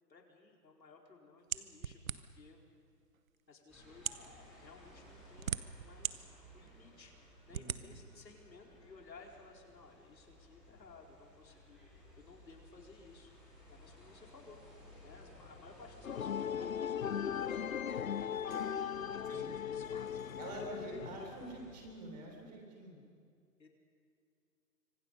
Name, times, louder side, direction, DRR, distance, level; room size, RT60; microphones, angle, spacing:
voice 1, 0.1-2.6 3.5-6.3 6.5-14.6 15.0-20.3 20.8-21.5 23.6-23.7, left 4 dB, 90° left, 1 dB, 4.5 m, -58 dB
sound 1, 1.5-2.5 3.3-3.4 3.9-4.3 5.1-6.1 6.7-6.8 7.5-7.8, right 7 dB, 55° right, 0.9 m, -38 dB
sound 2, 3.7-21.7, equal, ahead, 4.2 m, -58 dB
voice 2, 7.5-8.0 19.3-19.6 20.4-23.0, right 2 dB, 25° right, 2 dB, 3.5 m, -47 dB
sound 3, 16.0-21.6, left 8 dB, 55° left, 0.7 m, -38 dB
25.5 x 25.0 x 5.5 m, 2.3 s
hypercardioid pair, 175°, 50 cm